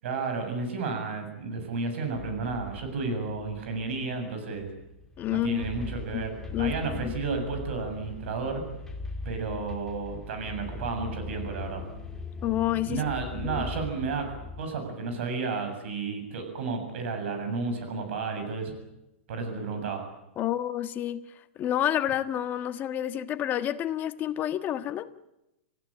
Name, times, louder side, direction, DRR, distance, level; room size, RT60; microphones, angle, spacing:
voice 1, 0.0-4.7 5.3-6.3 6.6-8.6 9.3-11.8 12.9-14.3 14.6-18.7 19.3-20.0, right 4 dB, 65° right, 6 dB, 7.3 m, -32 dB
sound 1, 2.1-14.6, left 3 dB, 5° left, 3.0 m, -40 dB
voice 2, 5.2-5.6 6.1-6.3 6.5-7.2 12.4-13.1 13.4-13.6 20.4-25.1, left 11 dB, 25° left, 9 dB, 1.5 m, -29 dB
27.5 x 16.0 x 9.9 m, 0.92 s
hypercardioid pair, 140°, 7 cm